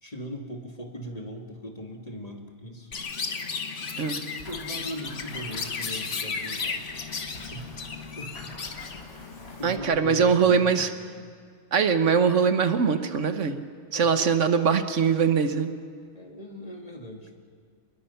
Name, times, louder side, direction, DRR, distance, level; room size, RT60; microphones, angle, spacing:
voice 1, 0.0-2.9 4.5-6.8 7.5-8.6 8.9-9.2 9.6-11.3 13.9-14.1 16.1-17.4, equal, 30° left, 2 dB, 2.4 m, -40 dB
Chirp tweet, 2.9-9.8, left 5 dB, 80° left, 1.6 m, -34 dB
sound 1, 4.4-10.1, equal, 60° left, 5.9 m, -48 dB
voice 2, 9.6-10.9 11.7-13.6 13.9-15.7, right 6 dB, 85° right, 9 dB, 1.5 m, -22 dB
29.0 x 21.0 x 5.8 m, 2.1 s
omnidirectional pair, 1.2 m